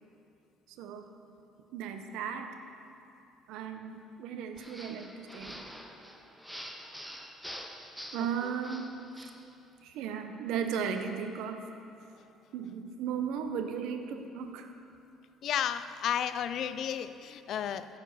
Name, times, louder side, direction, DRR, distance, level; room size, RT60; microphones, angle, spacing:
voice 1, 0.7-1.0 1.7-2.5 3.5-5.6 8.1-8.9 9.2-9.3 9.8-11.6 12.5-14.7, right 7 dB, 80° right, 6 dB, 0.7 m, -36 dB
sound 1, 4.6-9.4, equal, ahead, 0.7 m, -46 dB
voice 2, 15.4-17.9, left 9 dB, 60° left, 13 dB, 0.3 m, -32 dB
9.1 x 5.0 x 6.5 m, 2.7 s
cardioid pair, 100°, 0 cm